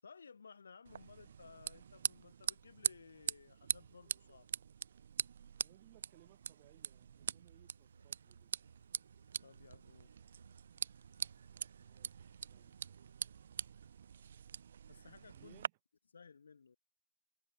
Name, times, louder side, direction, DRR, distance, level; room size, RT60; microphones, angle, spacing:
voice 1, 0.0-4.5 9.4-10.1 14.9-15.7 16.1-16.8, left 5 dB, 80° left, 6.4 m, -58 dB
sound 1, 0.9-15.7, right 8 dB, 55° right, 2.2 m, -44 dB
voice 2, 5.6-8.5 11.8-12.8 15.3-15.7, right 21 dB, 30° right, 7.5 m, -65 dB
sound 2, 7.5-13.3, right 5 dB, 80° right, 6.4 m, -65 dB
hypercardioid pair, 160°, 0 cm